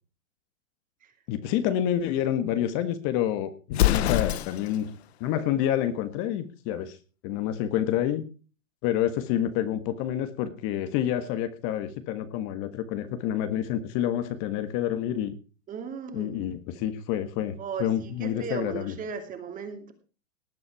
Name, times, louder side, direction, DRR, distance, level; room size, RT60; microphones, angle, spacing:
voice 1, 1.3-4.9 5.2-7.0 7.2-8.2 8.8-15.3 16.1-18.9, left 11 dB, 35° left, 10 dB, 1.5 m, -28 dB
Explosion, 3.7-4.8, left 14 dB, 55° left, 0.9 m, -24 dB
voice 2, 15.7-16.4 17.6-19.9, right 6 dB, 20° right, 7 dB, 2.6 m, -36 dB
18.5 x 8.6 x 4.7 m, 0.36 s
hypercardioid pair, 135°, 38 cm